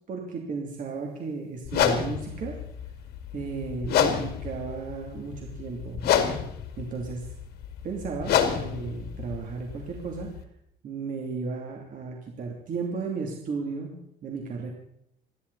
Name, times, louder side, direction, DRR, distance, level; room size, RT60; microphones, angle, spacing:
voice 1, 0.1-2.6 3.3-6.0 6.8-7.3 7.8-10.3 10.8-14.7, right 4 dB, 50° right, 0 dB, 3.0 m, -34 dB
sound 1, 1.7-10.4, left 9 dB, 70° left, 2.3 m, -29 dB
28.0 x 11.5 x 4.2 m, 0.75 s
cardioid pair, 110°, 17 cm